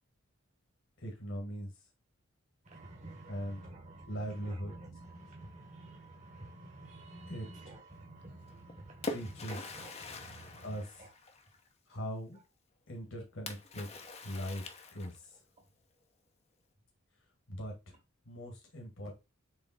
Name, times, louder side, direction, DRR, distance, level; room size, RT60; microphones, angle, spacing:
voice 1, 1.0-1.7 3.3-3.6 4.1-4.7 7.3-7.7 9.1-9.6 10.6-11.0 11.9-12.4 12.9-13.9 14.2-14.6 14.9-15.4 17.5-18.0 18.2-19.1, equal, 60° left, 1.7 m, -40 dB
voice 2, 2.6-11.1 12.3-12.4, right 2 dB, 35° right, 1.5 m, -51 dB
Splash splatter, 8.5-11.7 13.5-15.4, left 2 dB, 30° left, 0.8 m, -44 dB
6.9 x 3.3 x 4.1 m
head